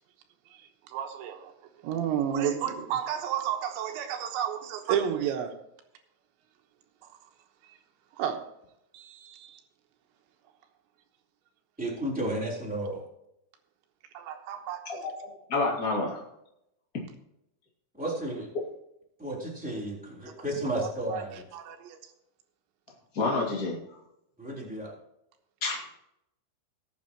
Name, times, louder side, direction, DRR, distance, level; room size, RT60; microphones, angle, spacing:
voice 1, 0.5-1.5 1.8-5.5 8.1-8.4 8.9-9.6 14.1-15.1 21.1-21.2 21.5-22.1, right 9 dB, 75° right, 5 dB, 3.2 m, -31 dB
voice 2, 11.8-13.0 18.0-18.5 19.2-21.4 24.4-24.9, right 1 dB, ahead, -4 dB, 2.5 m, -33 dB
voice 3, 14.8-16.2 23.1-23.7 25.6-25.9, left 3 dB, 60° left, -3 dB, 0.9 m, -29 dB
19.0 x 8.5 x 3.0 m, 0.81 s
omnidirectional pair, 5.6 m